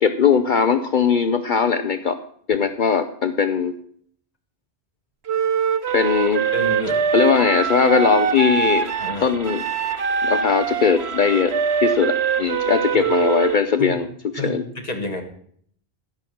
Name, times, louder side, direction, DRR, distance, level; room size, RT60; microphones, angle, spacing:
voice 1, 0.0-2.2 2.5-3.7 5.9-6.4 7.1-8.9 9.2-9.7 10.2-11.5 11.8-14.1 14.4-14.6, left 6 dB, 55° left, 10 dB, 0.7 m, -19 dB
Wind instrument woodwind instrument, 5.3-13.6, right 6 dB, 80° right, 1.1 m, -23 dB
sound 1, 5.9-13.6, right 2 dB, 55° right, 2.0 m, -39 dB
voice 2, 6.5-7.0 9.0-9.3 13.0-13.1 13.8-14.0 14.4-15.2, left 1 dB, 40° left, 4 dB, 2.0 m, -29 dB
14.0 x 6.0 x 7.7 m, 0.64 s
omnidirectional pair, 1.1 m